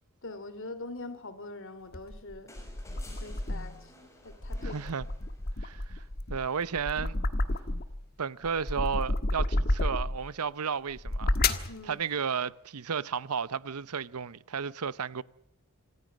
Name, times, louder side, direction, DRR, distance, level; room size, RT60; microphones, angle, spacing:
voice 1, 0.2-2.5 3.2-3.9 4.2-4.8 11.7-12.0, left 2 dB, 60° left, 2.8 m, -43 dB
sound 1, 1.9-3.8 4.3-8.0 8.4-10.3 10.9-11.7, left 2 dB, 45° left, 1.6 m, -31 dB
sound 2, 2.5-5.8 7.3-7.4, left 1 dB, 15° left, 5.8 m, -54 dB
voice 2, 4.6-5.1 5.6-6.0 6.3-7.2 8.2-15.2, right 6 dB, 85° right, 0.8 m, -33 dB
27.0 x 15.0 x 7.4 m
head